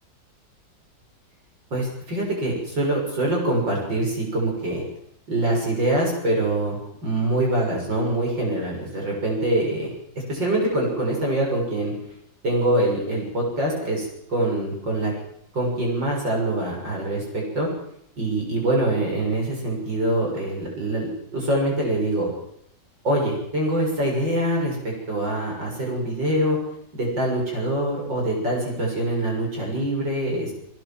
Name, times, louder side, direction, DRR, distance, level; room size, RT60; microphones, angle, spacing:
voice 1, 1.7-4.8 5.3-9.9 10.3-11.9 12.4-15.1 15.5-17.7 18.2-22.3 23.0-26.6 26.9-30.5, right 1 dB, 75° right, -1 dB, 7.6 m, -24 dB
21.5 x 18.5 x 7.5 m, 0.73 s
omnidirectional pair, 2.0 m